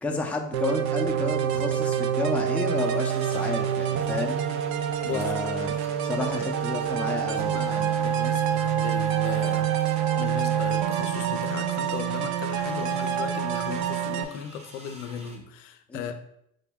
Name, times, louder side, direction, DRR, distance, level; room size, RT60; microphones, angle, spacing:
voice 1, 0.0-4.4 5.1-7.9 15.9-16.1, left 3 dB, 5° left, 0.5 m, -31 dB
sound 1, 0.5-14.2, right 9 dB, 55° right, 0.4 m, -26 dB
sound 2, 2.8-15.4, right 1 dB, 15° right, 0.9 m, -49 dB
voice 2, 5.0-5.4 7.0-16.2, left 8 dB, 85° left, 0.5 m, -37 dB
5.1 x 2.2 x 3.4 m
hypercardioid pair, 80°, 37 cm